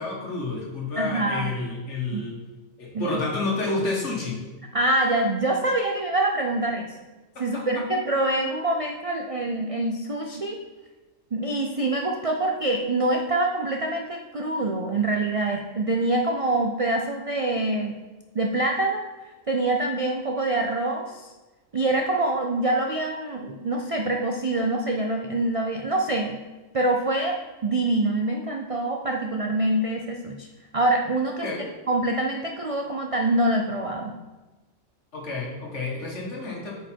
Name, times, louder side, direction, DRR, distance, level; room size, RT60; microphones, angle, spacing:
voice 1, 0.0-2.4 2.8-4.4 7.4-7.6 31.4-31.7 35.1-36.7, left 3 dB, 65° left, -2 dB, 2.0 m, -30 dB
voice 2, 1.0-1.5 2.1-2.2 2.9-3.2 4.7-7.0 7.4-10.6 11.3-18.0 18.3-19.0 19.5-21.3 21.7-26.4 26.7-30.5 30.7-31.5 31.9-34.1, right 2 dB, 45° right, 2 dB, 0.4 m, -25 dB
8.5 x 5.1 x 4.5 m, 1.2 s
omnidirectional pair, 1.3 m